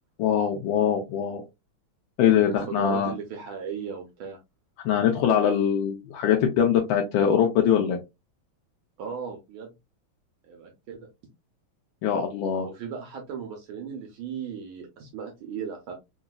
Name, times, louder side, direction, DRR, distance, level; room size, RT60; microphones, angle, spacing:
voice 1, 0.2-1.4 2.2-3.1 4.8-8.0 12.0-12.7, left 8 dB, 70° left, 3 dB, 1.3 m, -22 dB
voice 2, 2.2-4.4 9.0-9.7 10.4-11.1 12.6-15.9, right 7 dB, 70° right, 2 dB, 1.5 m, -36 dB
3.9 x 2.6 x 2.2 m, 0.23 s
omnidirectional pair, 2.4 m